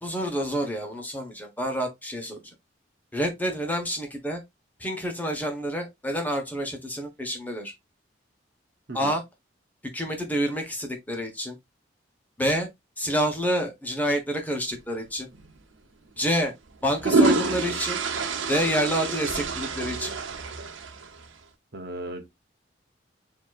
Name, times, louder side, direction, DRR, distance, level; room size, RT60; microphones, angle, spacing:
voice 1, 0.0-2.4 3.1-4.4 4.8-7.7 8.9-9.2 9.9-11.6 12.4-12.7 13.0-15.3 16.2-16.5 16.8-18.0 18.5-20.1, equal, 10° left, 1.3 m, -28 dB
sound 1, 15.3-15.5 16.7-21.3, right 3 dB, 85° right, 1.0 m, -27 dB
voice 2, 21.7-22.3, right 2 dB, 55° right, 0.9 m, -36 dB
7.1 x 2.9 x 2.5 m
head